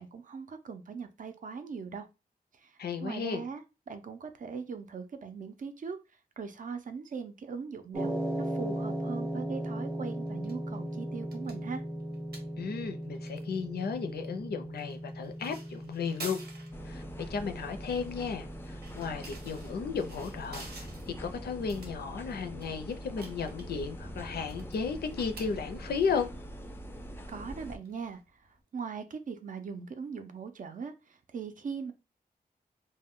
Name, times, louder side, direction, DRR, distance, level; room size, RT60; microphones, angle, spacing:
voice 1, 0.0-2.1 2.5-6.0 6.4-11.8 27.3-28.2 28.7-31.9, right 5 dB, 55° right, 0.4 m, -40 dB
voice 2, 2.8-3.4 12.6-16.4 16.8-20.7 21.2-26.3, left 5 dB, 90° left, 0.4 m, -34 dB
sound 1, 7.9-26.2, right 1 dB, 15° right, 0.7 m, -39 dB
sound 2, 10.2-28.6, right 3 dB, 85° right, 0.8 m, -52 dB
sound 3, 16.7-27.8, equal, 15° left, 0.3 m, -43 dB
2.1 x 2.1 x 3.6 m
wide cardioid pair, 110°, 16 cm